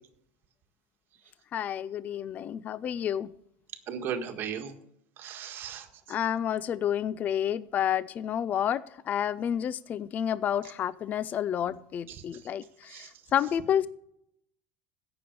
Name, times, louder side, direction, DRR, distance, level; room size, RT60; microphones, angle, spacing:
voice 1, 1.5-3.3 6.1-13.9, left 9 dB, 30° left, 17 dB, 0.4 m, -30 dB
voice 2, 3.9-4.7 5.2-5.9 11.7-11.8 12.1-12.4 12.9-13.1, right 7 dB, 45° right, 5 dB, 1.7 m, -37 dB
16.5 x 6.9 x 5.2 m, 0.75 s
supercardioid pair, 135°, 5 cm